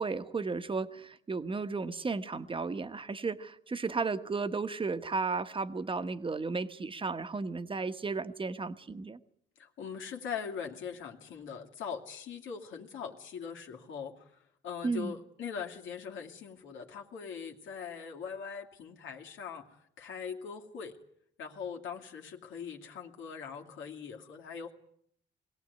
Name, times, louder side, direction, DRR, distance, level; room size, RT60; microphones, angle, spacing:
voice 1, 0.0-9.2 14.8-15.1, right 4 dB, 25° right, 10 dB, 1.3 m, -34 dB
voice 2, 9.6-20.9 21.4-24.7, left 6 dB, 75° left, 1 dB, 2.6 m, -41 dB
22.0 x 17.0 x 9.6 m, 0.69 s
cardioid pair, 90°, 20 cm